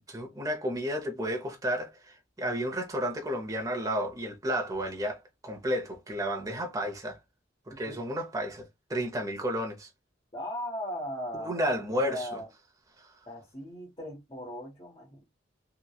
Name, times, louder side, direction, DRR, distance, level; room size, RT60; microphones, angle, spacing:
voice 1, 0.1-7.2 7.7-9.9 11.4-12.4 13.0-13.1, equal, 20° right, 0.6 m, -32 dB
voice 2, 10.3-11.7 12.0-12.5 13.3-15.2, equal, 30° left, 0.9 m, -38 dB
2.9 x 2.2 x 2.2 m
head